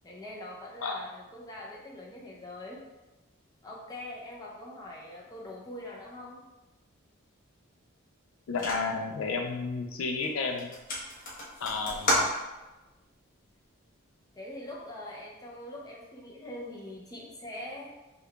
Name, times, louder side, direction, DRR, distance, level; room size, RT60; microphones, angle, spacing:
voice 1, 0.0-2.8 3.6-6.4 14.4-17.9, left 1 dB, 15° left, -4 dB, 0.6 m, -43 dB
voice 2, 8.5-10.7 11.6-12.3, left 4 dB, 70° left, 3 dB, 0.4 m, -32 dB
sound 1, 8.6-9.1 9.7-9.9 10.2-10.3 10.6-12.8, left 1 dB, 40° left, 0.9 m, -31 dB
3.7 x 2.3 x 3.2 m, 1.1 s
head